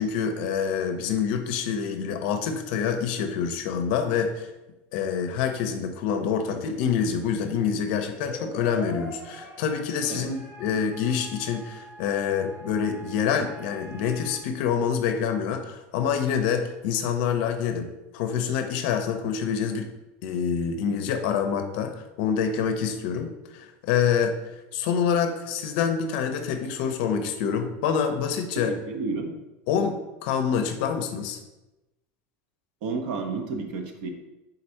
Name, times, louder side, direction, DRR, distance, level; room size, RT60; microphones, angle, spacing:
voice 1, 0.0-4.5 4.9-19.9 20.2-28.8 29.7-31.4, left 7 dB, 65° left, 7 dB, 0.5 m, -26 dB
sound 1, 8.0-14.4, equal, 25° right, 0.5 m, -43 dB
voice 2, 28.6-29.3 32.8-34.1, right 4 dB, 65° right, 4 dB, 0.6 m, -31 dB
3.9 x 2.6 x 4.3 m, 1.0 s
cardioid pair, 170°, 6 cm